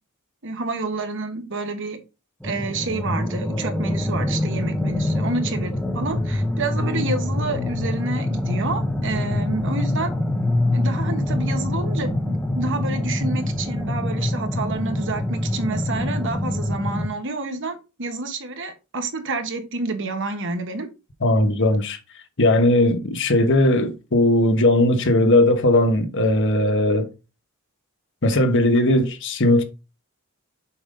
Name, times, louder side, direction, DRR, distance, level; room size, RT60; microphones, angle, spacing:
voice 1, 0.4-2.0 2.4-10.1 10.7-20.9, right 3 dB, 55° right, 1.3 m, -29 dB
sound 1, 2.4-17.1, left 1 dB, 5° left, 1.3 m, -25 dB
voice 2, 21.2-22.0 22.4-27.1 28.2-29.6, left 1 dB, 55° left, 1.1 m, -18 dB
7.0 x 5.1 x 3.8 m
head